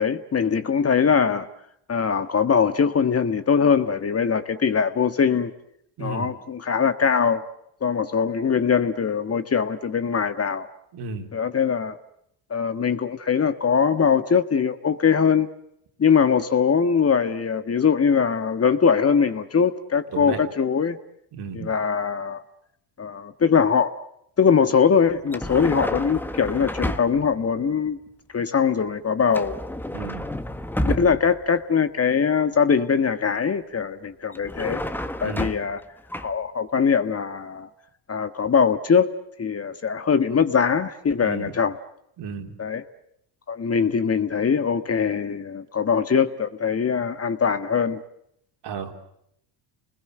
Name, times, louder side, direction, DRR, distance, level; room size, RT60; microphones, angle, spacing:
voice 1, 0.0-1.5 1.9-5.5 6.0-7.4 7.8-10.7 11.3-12.0 12.5-15.5 16.0-21.0 21.5-22.4 23.0-24.0 24.4-28.0 28.3-29.6 30.8-34.8 35.2-35.8 36.2-37.7 38.1-41.8 42.6-42.8 43.5-48.0, left 6 dB, 30° left, 10 dB, 1.5 m, -22 dB
voice 2, 6.0-6.3 10.9-11.3 20.1-20.4 21.3-21.7 29.9-30.2 35.2-35.5 41.2-41.5 42.2-42.5 48.6-48.9, right 5 dB, 60° right, 3 dB, 3.9 m, -33 dB
sound 1, 25.3-27.3 29.3-31.4 34.3-35.8 36.1-36.3, left 1 dB, 5° left, 1.4 m, -30 dB
30.0 x 21.0 x 7.9 m, 0.75 s
supercardioid pair, 80°, 47 cm